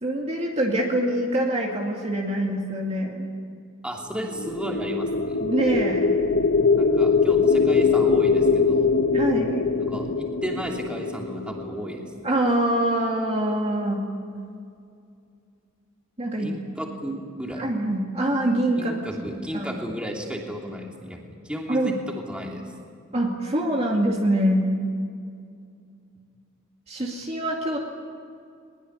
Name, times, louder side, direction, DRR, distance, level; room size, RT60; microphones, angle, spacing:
voice 1, 0.0-3.3 5.4-6.0 9.1-9.6 12.2-14.0 16.2-16.5 17.6-19.0 19.5-19.7 21.7-22.0 23.1-24.7 26.9-27.8, right 1 dB, 30° right, -1 dB, 2.4 m, -24 dB
voice 2, 3.8-5.4 6.8-8.9 9.8-12.0 16.3-17.6 18.7-22.6, equal, 5° right, 0 dB, 3.0 m, -34 dB
sound 1, 4.2-12.3, left 4 dB, 60° left, 1.2 m, -22 dB
21.5 x 21.5 x 9.6 m, 2.3 s
head